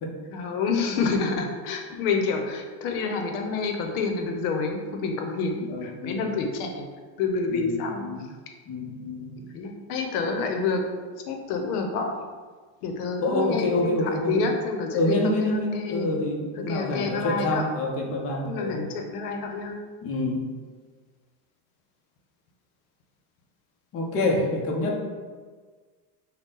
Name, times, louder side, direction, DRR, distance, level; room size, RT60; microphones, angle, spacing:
voice 1, 0.3-6.9 7.2-8.0 9.5-10.8 11.3-12.1 12.8-14.0 14.3-16.1 16.7-17.6 18.4-19.8, left 4 dB, 85° left, 4 dB, 0.8 m, -28 dB
voice 2, 5.7-6.3 7.5-8.3 8.7-9.4 13.2-14.5 14.9-18.8 20.0-20.5 23.9-25.0, left 1 dB, 30° left, -1 dB, 0.7 m, -27 dB
3.9 x 2.2 x 3.8 m, 1.5 s
supercardioid pair, 135°, 44 cm